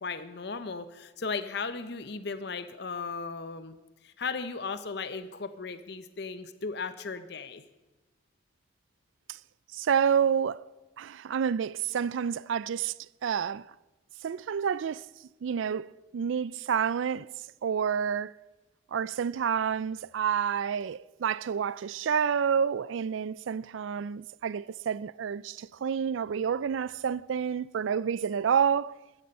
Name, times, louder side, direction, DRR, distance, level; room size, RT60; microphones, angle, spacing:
voice 1, 0.0-3.8 4.0-7.6, left 4 dB, 55° left, 0.6 m, -36 dB
voice 2, 9.7-10.7 11.0-12.9 13.2-13.7 14.2-15.1 15.4-17.3 17.6-18.4 18.9-29.0, right 7 dB, 80° right, 0.4 m, -29 dB
14.5 x 13.0 x 5.4 m
head